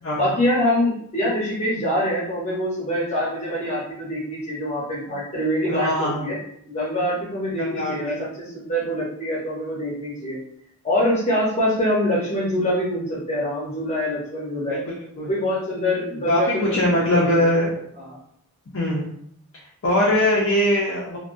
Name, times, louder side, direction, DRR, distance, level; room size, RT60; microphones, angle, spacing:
voice 1, 0.1-6.4 6.7-10.4 10.8-14.8 15.3-17.4 18.0-18.2, left 1 dB, 30° left, -5 dB, 0.8 m, -24 dB
voice 2, 5.7-6.3 7.6-8.2 14.7-15.3 16.3-17.8 18.7-19.1 19.8-21.2, left 1 dB, 55° left, -5 dB, 0.5 m, -22 dB
2.3 x 2.2 x 2.5 m, 0.69 s
head